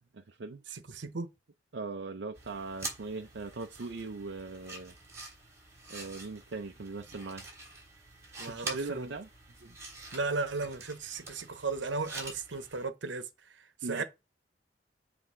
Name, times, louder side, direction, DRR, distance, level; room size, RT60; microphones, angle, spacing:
voice 1, 0.1-0.6 1.7-4.9 5.9-7.4 8.4-9.3 13.8-14.0, right 3 dB, 70° right, 0.5 m, -40 dB
voice 2, 0.7-1.3 8.4-9.1 9.6-9.7 10.1-13.3 13.5-14.0, right 3 dB, 85° right, 0.9 m, -35 dB
sound 1, 2.3-12.9, right 2 dB, 15° right, 3.0 m, -46 dB
7.5 x 3.4 x 4.8 m
head